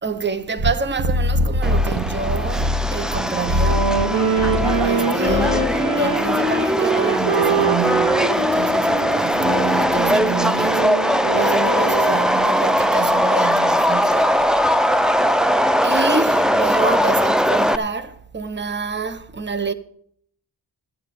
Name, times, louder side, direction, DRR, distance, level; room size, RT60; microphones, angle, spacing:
voice 1, 0.0-4.0 4.7-11.1 11.3-14.8 15.8-19.7, right 4 dB, 25° right, 1.0 m, -27 dB
sound 1, 0.6-3.2 3.5-4.0 4.4-4.9 5.2-5.8, left 1 dB, 55° right, 1.4 m, -22 dB
Subway metro underground, 1.6-17.8, equal, ahead, 0.6 m, -20 dB
Wind instrument woodwind instrument, 3.5-12.2, right 4 dB, 85° right, 2.4 m, -24 dB
12.5 x 8.5 x 6.7 m
cardioid pair, 75°, 42 cm